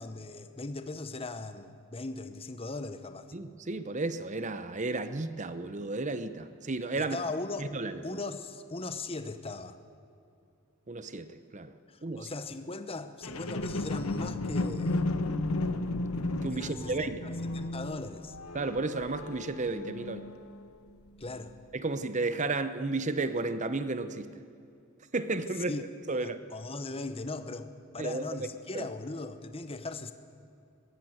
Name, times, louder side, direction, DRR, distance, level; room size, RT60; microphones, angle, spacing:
voice 1, 0.0-3.3 7.0-7.7 8.0-9.8 11.9-15.1 16.5-16.9 17.2-18.4 21.2-21.5 25.7-25.8 26.1-27.7 27.9-30.1, left 2 dB, 25° left, 10 dB, 0.9 m, -38 dB
voice 2, 3.3-7.2 7.6-8.2 10.9-11.7 12.0-12.3 16.4-17.3 18.5-20.3 21.7-24.4 25.1-26.4 28.0-28.3 28.7-28.9, right 3 dB, 35° right, 12 dB, 0.8 m, -33 dB
sound 1, 13.2-20.7 21.2-21.3, left 2 dB, 85° left, 1.1 m, -34 dB
20.5 x 16.0 x 8.0 m, 2.6 s
head